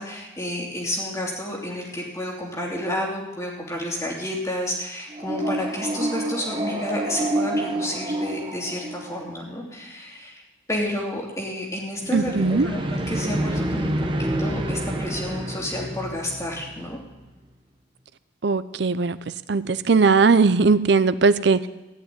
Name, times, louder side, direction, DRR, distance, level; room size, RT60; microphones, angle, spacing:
voice 1, 0.0-10.4 10.7-13.9 14.4-17.0, left 1 dB, 15° left, -2 dB, 3.0 m, -30 dB
sound 1, 5.1-9.4 12.0-17.0, right 1 dB, 25° right, 1.0 m, -28 dB
voice 2, 12.1-12.7 18.4-19.2 19.5-21.7, right 4 dB, 60° right, 15 dB, 0.6 m, -19 dB
15.5 x 5.7 x 9.5 m, 1.1 s
head